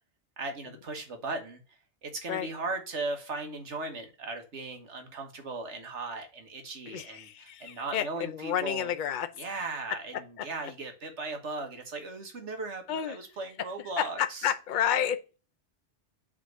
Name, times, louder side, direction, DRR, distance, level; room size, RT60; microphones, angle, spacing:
voice 1, 0.4-1.6 2.0-8.9 9.4-14.5, right 3 dB, 85° right, 1.7 m, -37 dB
voice 2, 6.9-9.3 10.4-10.5 12.9-13.2 14.0-15.4, left 9 dB, 50° left, 0.7 m, -30 dB
7.5 x 3.8 x 6.5 m
omnidirectional pair, 1.2 m